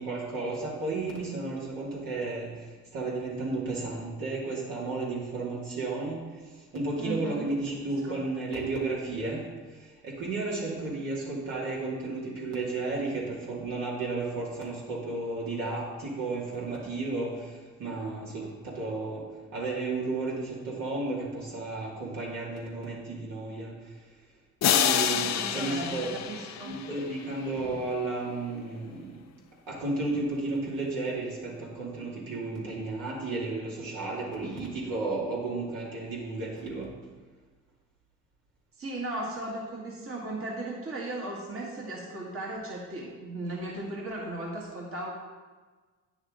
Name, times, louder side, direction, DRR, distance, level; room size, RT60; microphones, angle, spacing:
voice 1, 0.0-9.4 9.7-23.9 24.7-26.1 26.6-29.3 29.7-37.0, right 3 dB, 65° right, -4 dB, 2.5 m, -33 dB
voice 2, 7.0-7.5 8.1-8.2 25.1-26.8 38.8-45.1, right 2 dB, 35° right, -3 dB, 1.9 m, -36 dB
sound 1, 24.6-27.5, left 10 dB, 50° left, 0.6 m, -28 dB
9.3 x 6.3 x 3.8 m, 1.4 s
supercardioid pair, 65°, 36 cm